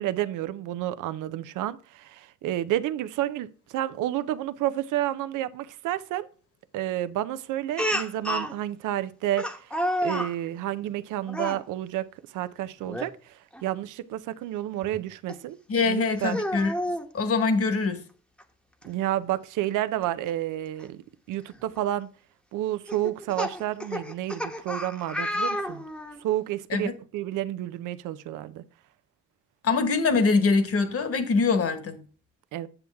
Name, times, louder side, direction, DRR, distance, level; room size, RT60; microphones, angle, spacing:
voice 1, 0.0-3.5 3.7-6.3 6.7-9.5 10.0-12.1 12.3-13.1 13.6-15.6 15.8-16.4 18.8-21.0 21.3-22.1 22.5-25.8 26.2-28.6 32.5-32.7, right 13 dB, 90° right, 0.6 m, -30 dB
Speech, 7.8-8.5 9.4-10.3 11.3-11.6 12.8-13.1 13.5-13.6 15.3-15.4 16.2-17.1 18.4-18.5 18.8-18.9 20.8-20.9 21.5-21.8 22.9-26.2, equal, 5° left, 0.9 m, -30 dB
voice 2, 15.7-16.7 17.1-18.0 26.7-26.9 29.6-32.0, left 4 dB, 50° left, 1.4 m, -23 dB
8.0 x 7.1 x 3.4 m
cardioid pair, 90°, 30 cm